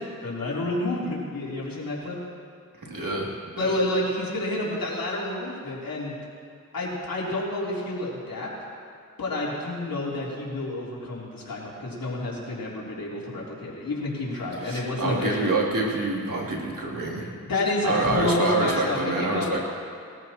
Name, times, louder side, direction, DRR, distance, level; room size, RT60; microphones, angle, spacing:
voice 1, 0.0-2.2 3.6-6.1 6.7-8.5 9.2-15.5 17.4-19.6, left 2 dB, 85° left, -5 dB, 3.4 m, -29 dB
voice 2, 2.7-3.8 14.6-17.3 17.8-19.6, right 2 dB, 70° right, -3 dB, 3.0 m, -27 dB
21.0 x 14.0 x 3.0 m, 2.2 s
cardioid pair, 45°, 34 cm